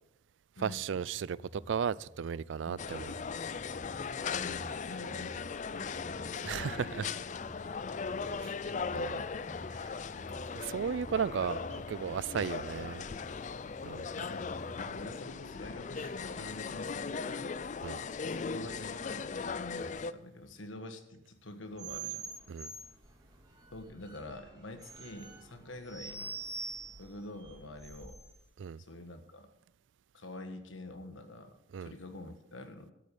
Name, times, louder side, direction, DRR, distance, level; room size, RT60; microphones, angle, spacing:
voice 1, 0.6-3.1 6.5-7.1 8.4-8.5 8.9-9.3 9.8-9.9 10.5-13.0 13.8-14.0 17.8-18.0 22.5-22.7 28.6-28.8 31.7-31.9, right 7 dB, 75° right, 0.4 m, -35 dB
sound 1, 1.0-15.0, equal, ahead, 2.3 m, -52 dB
sound 2, 2.8-20.1, left 5 dB, 40° left, 0.4 m, -38 dB
voice 2, 4.3-6.7 14.1-17.6 18.3-22.3 23.7-26.3 27.0-28.2 28.8-29.5 30.1-32.9, left 2 dB, 85° left, 1.5 m, -46 dB
sound 3, 21.7-28.4, right 4 dB, 20° right, 2.4 m, -45 dB
12.5 x 8.3 x 7.0 m
head